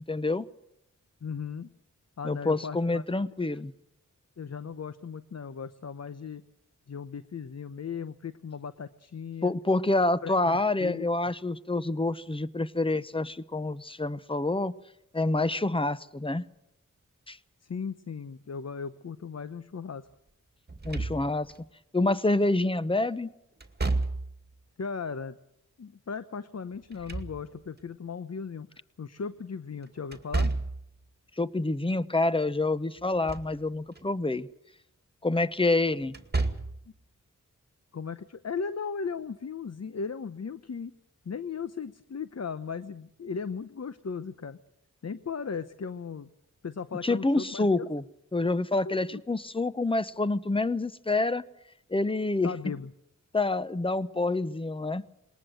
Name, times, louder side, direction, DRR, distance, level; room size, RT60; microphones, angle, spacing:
voice 1, 0.1-0.4 2.2-3.7 9.4-14.7 15.1-16.4 17.3-17.4 20.8-21.5 21.9-23.3 31.4-34.5 35.2-36.1 47.0-48.0 48.3-51.4 51.9-52.5 53.3-55.0, left 2 dB, 15° left, 15 dB, 0.9 m, -27 dB
voice 2, 1.2-1.7 2.2-3.0 4.4-6.4 6.9-9.5 10.2-11.1 17.6-20.1 24.8-25.4 25.8-28.7 29.0-30.5 37.9-40.9 41.2-44.6 45.0-46.3 46.6-47.9 48.9-49.2 52.4-52.9, left 5 dB, 55° left, 13 dB, 0.9 m, -37 dB
Slam / Thump thud, 20.7-21.6 23.6-24.5 26.7-27.8 30.1-30.9 33.0-33.6 34.0-34.1 36.1-36.9, right 3 dB, 30° right, 2.2 m, -31 dB
21.0 x 18.5 x 7.7 m, 0.78 s
cardioid pair, 55°, 32 cm